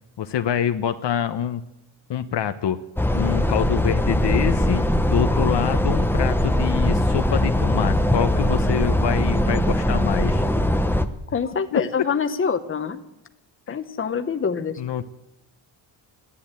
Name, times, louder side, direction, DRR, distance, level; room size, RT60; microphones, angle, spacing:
voice 1, 0.2-1.6 2.1-2.8 3.1-10.4 11.7-11.8 13.7-13.8 14.8-15.0, left 9 dB, 60° left, 10 dB, 1.0 m, -26 dB
sound 1, 3.0-11.0, left 1 dB, 5° left, 0.8 m, -21 dB
voice 2, 11.3-13.0 13.7-14.8, left 6 dB, 25° left, 8 dB, 1.1 m, -25 dB
13.5 x 11.0 x 8.9 m, 0.91 s
cardioid pair, 105°, 48 cm